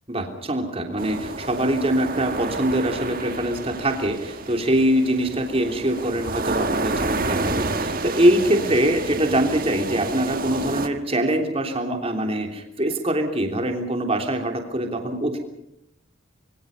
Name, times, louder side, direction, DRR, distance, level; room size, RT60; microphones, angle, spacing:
voice 1, 0.1-15.4, right 1 dB, 30° right, 4 dB, 3.3 m, -23 dB
sound 1, 1.0-10.9, right 2 dB, 45° right, 1.6 m, -29 dB
26.0 x 23.5 x 5.5 m, 0.79 s
head